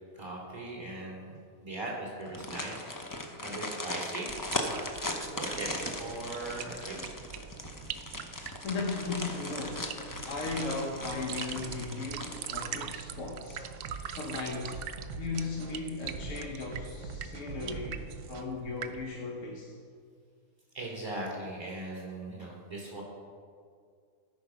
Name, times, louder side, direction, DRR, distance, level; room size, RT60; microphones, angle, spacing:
voice 1, 0.1-2.8 3.4-4.3 4.7-4.8 5.3-5.7 6.0-7.0 20.7-23.0, right 2 dB, 20° right, -4 dB, 3.0 m, -39 dB
sound 1, 2.2-13.1 13.5-13.6 14.0-14.7 15.0-15.1, left 1 dB, 25° left, 0.4 m, -39 dB
sound 2, 4.3-19.1, right 9 dB, 80° right, 0.5 m, -44 dB
sound 3, 5.5-18.4, right 4 dB, 60° right, 1.1 m, -46 dB
voice 2, 8.6-10.0 10.2-14.8 15.2-19.7, left 3 dB, 60° left, -1 dB, 1.3 m, -37 dB
13.0 x 5.3 x 5.8 m, 2.1 s
omnidirectional pair, 1.5 m